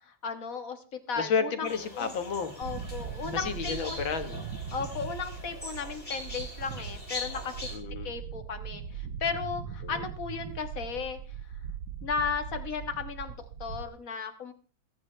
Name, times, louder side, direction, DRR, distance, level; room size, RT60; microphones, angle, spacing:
voice 1, 0.2-0.8 1.1-1.7 1.9-2.1 2.6-4.0 4.7-7.5 8.0-11.2 12.0-13.3 13.6-14.5, left 5 dB, 45° left, 7 dB, 1.8 m, -35 dB
voice 2, 1.2-2.5 3.3-4.4 7.7-8.1 9.8-10.0, left 6 dB, 75° left, 8 dB, 2.3 m, -31 dB
sound 1, 1.7-7.8, left 2 dB, 20° left, 6.1 m, -42 dB
sound 2, 2.6-13.8, right 7 dB, 85° right, 1.8 m, -40 dB
22.0 x 9.6 x 3.3 m, 0.39 s
omnidirectional pair, 2.1 m